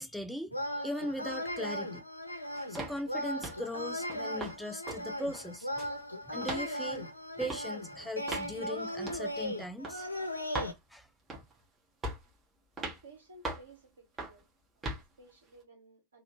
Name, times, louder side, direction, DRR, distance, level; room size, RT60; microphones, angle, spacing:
voice 1, 0.0-2.0 2.5-5.7 6.3-7.1 7.4-10.1 10.9-11.1, equal, ahead, 0.3 m, -39 dB
sound 1, 0.5-10.7, equal, 85° left, 0.7 m, -37 dB
sound 2, 2.8-3.0 3.4-3.7 4.1-4.6 4.9-5.0 5.3-6.0 6.4-6.7 7.4-7.6 8.3-8.5 9.1-9.3 9.8-10.0 10.5-10.8 11.3-11.6 12.0-12.3 12.8-13.0 13.4-13.7 14.2-14.4 14.8-15.0, right 2 dB, 15° right, 1.4 m, -38 dB
voice 2, 13.0-14.5 14.8-16.2, right 2 dB, 70° right, 1.9 m, -56 dB
3.1 x 2.9 x 4.2 m
figure-of-eight pair, 90°, 0 cm